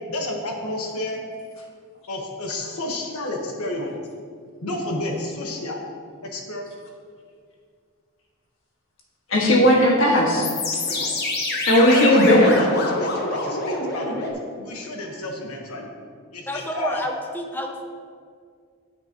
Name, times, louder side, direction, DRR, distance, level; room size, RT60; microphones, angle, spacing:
voice 1, 0.1-1.2 2.1-3.9 4.6-5.8 6.2-6.6 10.9-11.2 11.9-14.3 14.6-15.9 16.3-17.0, left 1 dB, 90° left, 1 dB, 1.3 m, -30 dB
voice 2, 9.3-10.5 11.7-12.6, left 1 dB, 65° left, -2 dB, 1.7 m, -16 dB
sound 1, 10.4-14.3, left 2 dB, 45° left, 1.0 m, -27 dB
voice 3, 16.5-17.8, equal, 10° left, 3 dB, 0.6 m, -29 dB
9.6 x 7.7 x 2.9 m, 2.1 s
head